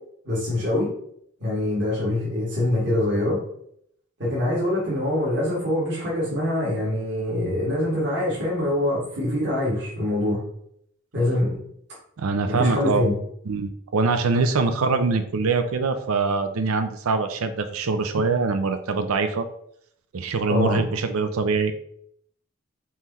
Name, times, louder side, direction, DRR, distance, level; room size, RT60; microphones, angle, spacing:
voice 1, 0.2-0.9 1.4-3.4 4.2-10.4 11.1-11.6 12.5-13.1 20.5-20.8, left 1 dB, 50° right, -7 dB, 2.2 m, -24 dB
voice 2, 12.2-13.1 13.5-19.5 20.1-21.7, right 4 dB, 85° right, 9 dB, 0.5 m, -23 dB
5.6 x 3.1 x 5.6 m, 0.70 s
head